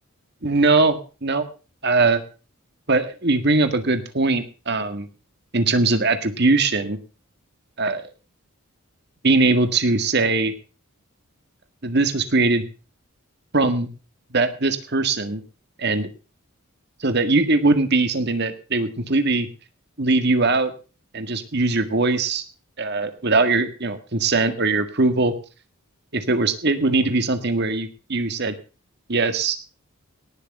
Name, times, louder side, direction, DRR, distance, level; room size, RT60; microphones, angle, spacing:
voice 1, 0.4-1.5 1.8-2.2 2.9-5.1 5.5-7.0 7.8-8.0 9.2-10.5 11.8-12.6 13.5-13.9 14.3-15.4 15.8-16.1 17.0-19.5 20.0-20.7 21.1-22.4 22.8-25.3 26.1-28.6 29.1-29.6, right 3 dB, 50° right, 9 dB, 1.8 m, -21 dB
18.5 x 6.7 x 6.6 m, 0.35 s
head